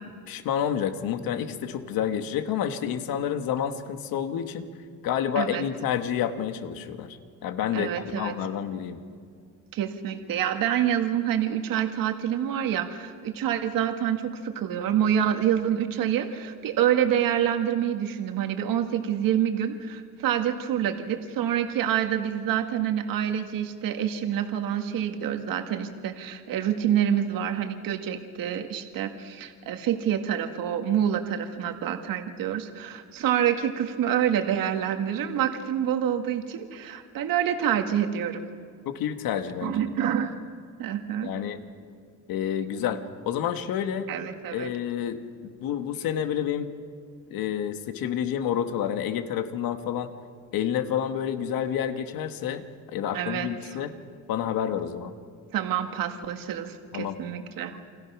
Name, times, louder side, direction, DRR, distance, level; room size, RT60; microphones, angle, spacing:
voice 1, 0.3-4.7 5.0-7.2 7.4-9.0 38.9-39.8 41.2-41.6 42.3-44.1 44.5-46.7 47.3-50.1 50.5-53.9 54.3-55.1 56.9-57.2, left 9 dB, 85° left, 8 dB, 1.8 m, -29 dB
voice 2, 7.7-8.3 9.7-38.5 39.6-40.4 40.8-41.3 44.1-44.7 53.1-53.8 55.5-57.8, right 9 dB, 75° right, 6 dB, 1.8 m, -27 dB
29.0 x 25.0 x 6.2 m, 2.2 s
cardioid pair, 145°, 34 cm